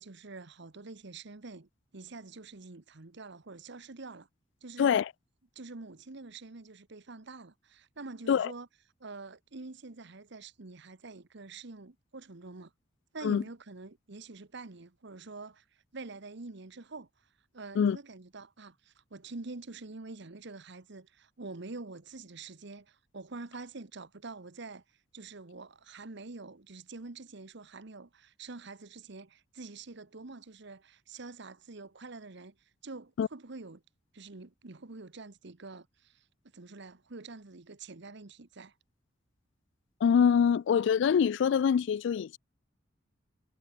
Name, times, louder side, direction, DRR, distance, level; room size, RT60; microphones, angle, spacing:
voice 1, 0.0-4.3 4.6-5.0 5.5-8.7 9.0-12.7 13.1-15.6 15.9-17.1 17.5-24.8 25.1-32.5 32.8-33.8 34.1-36.2 36.5-38.7, right 3 dB, 65° right, 1.2 m, -46 dB
voice 2, 4.8-5.1 8.3-8.5 13.2-13.4 17.8-18.0 33.2-33.3 40.0-42.4, left 7 dB, 70° left, 0.3 m, -24 dB
head